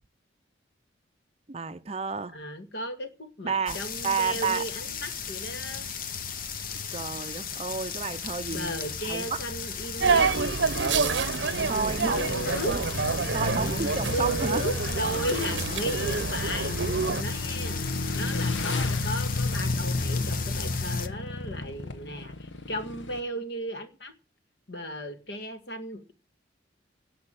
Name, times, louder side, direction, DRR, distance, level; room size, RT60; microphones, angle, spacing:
voice 1, 1.5-2.4 3.4-3.8 4.0-4.7 6.9-8.7 9.0-9.4 11.6-12.2 12.6-12.8 13.3-14.6, right 5 dB, 30° right, 0.5 m, -30 dB
voice 2, 2.3-5.9 8.5-10.4 12.0-12.7 13.6-17.8 18.1-24.1 24.7-26.1, equal, 60° left, 1.8 m, -35 dB
sound 1, 3.7-21.1, left 4 dB, 45° left, 0.8 m, -33 dB
sound 2, 10.0-17.2, right 4 dB, 70° right, 0.7 m, -27 dB
Motorcycle / Engine, 13.4-23.2, left 2 dB, 75° left, 1.2 m, -37 dB
11.0 x 6.0 x 8.9 m
head